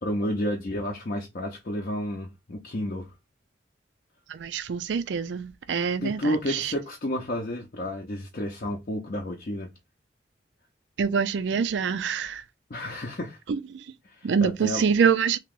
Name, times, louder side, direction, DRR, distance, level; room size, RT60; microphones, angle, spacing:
voice 1, 0.0-3.1 6.0-9.7 12.7-13.4 14.0-14.9, left 1 dB, 50° left, 0.6 m, -31 dB
voice 2, 4.3-6.7 11.0-12.4 13.5-13.8 14.2-15.4, right 6 dB, 75° right, 0.4 m, -25 dB
2.9 x 2.9 x 3.6 m
head